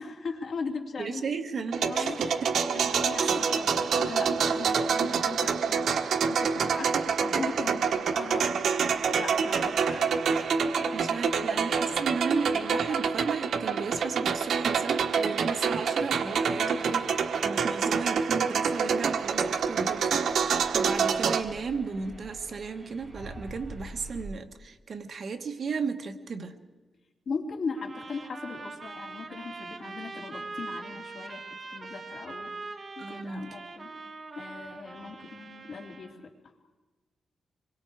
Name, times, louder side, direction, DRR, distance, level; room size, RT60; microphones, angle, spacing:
voice 1, 0.0-1.2 1.6-2.2 2.7-8.8 9.1-10.1 10.6-12.1 12.7-13.0 16.6-17.0 27.3-31.4 31.7-33.9 34.3-36.5, left 4 dB, 55° left, 2 dB, 2.8 m, -39 dB
voice 2, 1.0-2.5 3.2-3.4 10.9-26.6 33.0-33.5, right 5 dB, 50° right, 6 dB, 1.4 m, -35 dB
sound 1, 1.7-21.4, right 6 dB, 70° right, 1.3 m, -27 dB
sound 2, 19.2-24.3, right 1 dB, 15° right, 4.9 m, -46 dB
sound 3, 27.7-36.1, right 3 dB, 35° right, 1.6 m, -42 dB
26.0 x 22.5 x 4.8 m, 1.2 s
wide cardioid pair, 150°, 0 cm